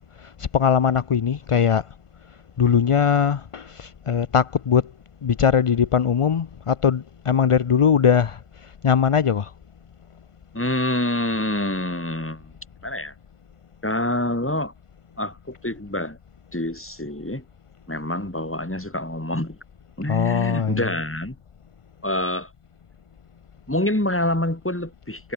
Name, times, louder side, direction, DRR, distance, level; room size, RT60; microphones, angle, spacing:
voice 1, 0.0-1.9 2.6-4.9 5.2-9.5 20.0-20.9, left 7 dB, 45° left, 0.4 m, -21 dB
voice 2, 10.5-12.6 12.8-13.1 13.8-14.7 15.2-16.2 16.5-17.4 17.9-19.6 20.0-21.4 22.0-22.5 23.7-25.3, left 1 dB, 10° left, 1.9 m, -26 dB
omnidirectional pair, 1.1 m